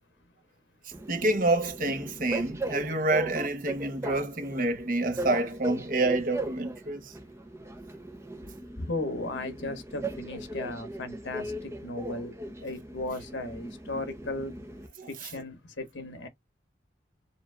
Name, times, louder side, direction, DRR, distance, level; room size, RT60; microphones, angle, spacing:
voice 1, 0.8-7.1 15.0-15.1, right 2 dB, 45° right, 0.8 m, -28 dB
Train, 0.9-14.9, right 1 dB, 15° right, 0.6 m, -38 dB
voice 2, 8.8-14.6 15.1-16.3, left 2 dB, 80° left, 1.2 m, -36 dB
7.0 x 2.5 x 2.3 m
head